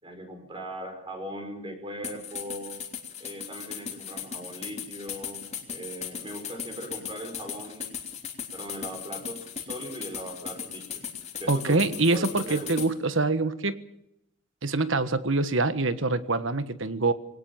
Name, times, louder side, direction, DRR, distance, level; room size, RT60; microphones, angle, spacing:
voice 1, 0.0-2.8 3.2-5.4 5.7-8.0 8.5-11.0 11.4-12.9, equal, 25° right, 5 dB, 5.3 m, -39 dB
sound 1, 2.0-12.9, left 7 dB, 35° left, 3.3 m, -37 dB
voice 2, 11.5-13.8 14.6-17.1, right 3 dB, 65° right, 13 dB, 1.5 m, -25 dB
22.0 x 18.5 x 7.4 m, 0.79 s
head